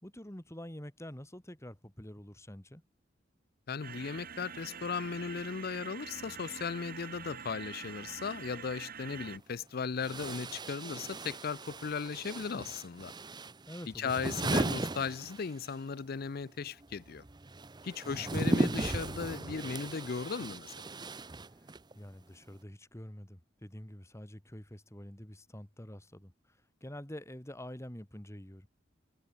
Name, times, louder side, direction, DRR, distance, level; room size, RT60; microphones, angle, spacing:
voice 1, 0.0-2.8 13.7-14.3 18.0-18.9 21.6-21.7 21.9-28.7, equal, 15° left, 2.4 m, -47 dB
voice 2, 3.7-13.1 14.0-17.2 17.8-20.7, left 5 dB, 55° left, 0.5 m, -37 dB
sound 1, 3.8-9.4, right 6 dB, 50° right, 2.3 m, -45 dB
sound 2, 9.1-9.2 10.0-21.9, right 2 dB, 25° right, 0.8 m, -36 dB
head